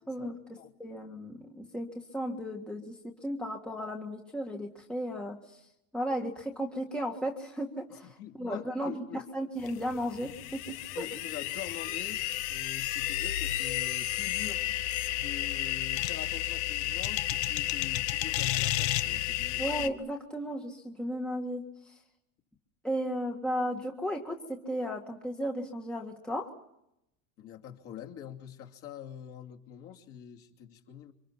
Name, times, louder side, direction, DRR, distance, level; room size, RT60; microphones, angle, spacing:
voice 1, 0.1-5.6 5.9-11.1 19.6-22.0 22.8-26.5, equal, ahead, 0 dB, 1.7 m, -35 dB
voice 2, 7.9-9.2 10.9-12.2 12.5-14.7 15.1-19.6 27.4-31.1, left 9 dB, 35° left, 1 dB, 2.7 m, -45 dB
sound 1, 9.7-19.9, left 14 dB, 55° left, 1.3 m, -32 dB
29.5 x 25.5 x 5.8 m, 0.79 s
supercardioid pair, 175°, 39 cm